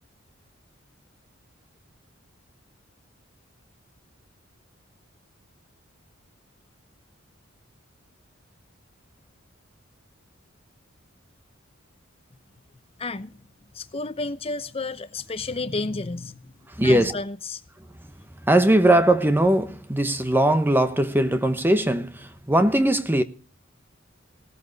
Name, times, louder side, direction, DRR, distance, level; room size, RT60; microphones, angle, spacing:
voice 1, 13.0-13.4 13.7-16.5 16.8-17.6, left 3 dB, 30° left, 0.8 m, -31 dB
voice 2, 16.7-17.2 18.5-23.2, right 1 dB, 10° right, 1.0 m, -20 dB
17.5 x 14.0 x 4.0 m
head